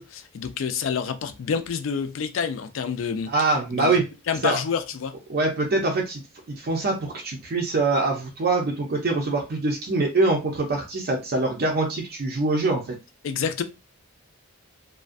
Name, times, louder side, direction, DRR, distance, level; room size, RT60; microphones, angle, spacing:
voice 1, 0.0-3.3 3.7-4.0 4.3-5.1 13.2-13.6, left 6 dB, 65° left, 0.3 m, -28 dB
voice 2, 3.3-4.1 4.4-4.6 5.3-6.2 6.6-13.0, right 3 dB, 50° right, 0.4 m, -24 dB
2.4 x 2.1 x 2.4 m
head